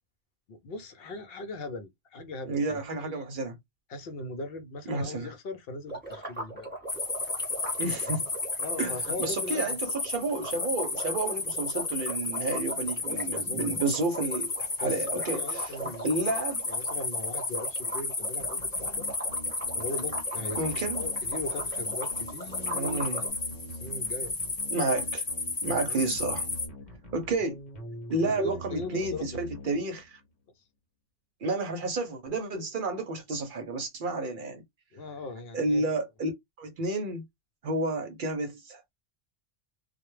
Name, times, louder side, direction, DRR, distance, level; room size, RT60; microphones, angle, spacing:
voice 1, 0.5-2.8 3.1-3.2 3.9-6.7 8.6-9.8 13.1-13.6 14.8-16.2 16.7-19.1 19.8-20.6 20.9-23.3 23.8-24.4 25.9-26.0 28.2-29.2 34.9-35.8, left 2 dB, 65° left, 0.8 m, -39 dB
voice 2, 2.4-3.5 4.9-5.3 7.8-8.3 8.8-16.6 20.6-21.1 22.7-23.2 24.7-25.2 25.6-26.5 27.1-27.6 28.1-30.2 31.4-34.6 35.5-36.3 36.6-37.2 37.6-38.9, right 2 dB, 60° right, 0.7 m, -31 dB
sound 1, 5.9-23.3, right 1 dB, 10° right, 1.1 m, -41 dB
sound 2, 6.9-26.7, left 3 dB, 25° left, 0.5 m, -33 dB
sound 3, 18.4-30.2, equal, 45° left, 1.1 m, -45 dB
2.2 x 2.1 x 3.0 m
omnidirectional pair, 1.1 m